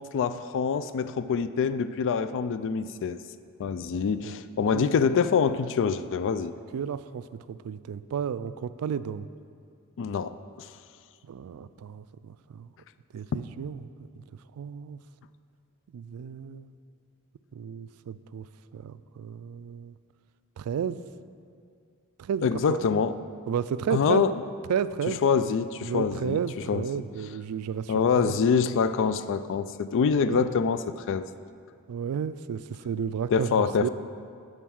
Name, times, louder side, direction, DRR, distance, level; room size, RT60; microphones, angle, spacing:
voice 1, 0.0-3.2 3.6-6.5 10.0-10.7 22.4-23.2 23.9-24.3 25.1-26.4 26.7-26.8 27.9-31.3 33.3-33.9, left 6 dB, 60° left, 13 dB, 0.3 m, -25 dB
voice 2, 6.7-9.3 11.3-12.7 13.1-13.8 14.6-15.0 15.9-16.7 17.5-18.5 18.7-19.9 20.6-21.0 22.2-22.8 23.5-24.2 24.7-25.2 25.8-28.3 30.2-30.5 31.9-33.9, right 7 dB, 75° right, 14 dB, 0.3 m, -32 dB
9.1 x 5.1 x 6.3 m, 2.3 s
head